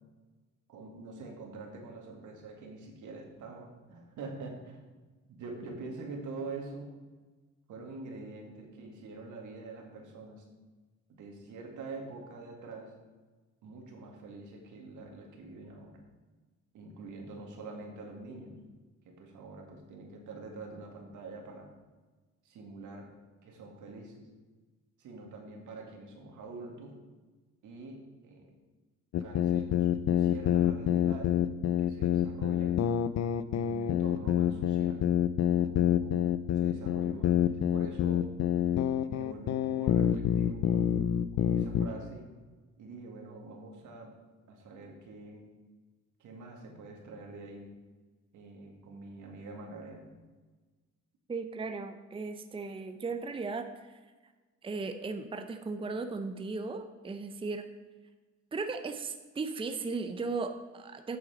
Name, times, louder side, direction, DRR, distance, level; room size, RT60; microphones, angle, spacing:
voice 1, 0.7-4.8 5.3-6.9 7.7-10.4 11.1-12.9 13.6-16.0 16.7-18.6 19.1-21.7 22.4-23.1 23.4-24.3 25.0-26.9 27.6-28.5 29.2-31.4 31.8-32.8 33.5-35.1 35.6-38.3 39.1-40.9 41.4-42.3 42.8-44.1 44.5-45.5 46.2-47.7 48.3-50.1, right 3 dB, 80° right, 2 dB, 2.0 m, -45 dB
sound 1, 29.1-41.9, left 10 dB, 60° left, 0.5 m, -27 dB
voice 2, 51.3-54.0 54.6-57.7 58.5-61.2, right 4 dB, 15° right, 7 dB, 0.6 m, -36 dB
8.4 x 7.1 x 5.0 m, 1.3 s
cardioid pair, 90°, 30 cm